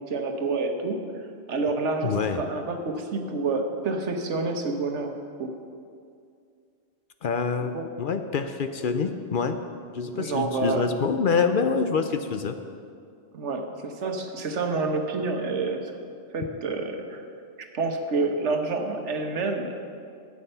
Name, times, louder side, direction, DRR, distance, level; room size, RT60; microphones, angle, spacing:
voice 1, 0.1-1.0 1.5-5.1 5.4-5.5 7.7-7.9 10.1-10.9 13.3-16.0 16.3-17.2 17.6-19.8, right 3 dB, 85° right, 4 dB, 1.4 m, -28 dB
voice 2, 2.0-2.4 7.2-9.6 9.9-12.6, left 5 dB, 55° left, 8 dB, 0.7 m, -26 dB
13.0 x 8.6 x 5.6 m, 2.4 s
omnidirectional pair, 1.2 m